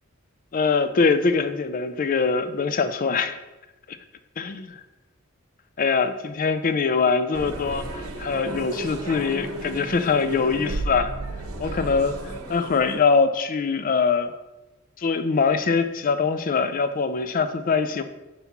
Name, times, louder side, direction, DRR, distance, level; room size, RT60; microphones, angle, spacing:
voice 1, 0.5-3.4 4.4-4.8 5.8-11.1 11.6-14.3 15.0-18.0, left 5 dB, 40° left, 10 dB, 0.4 m, -23 dB
sound 1, 7.3-13.0, right 2 dB, 85° right, 0.9 m, -33 dB
6.9 x 4.1 x 4.2 m, 1.1 s
head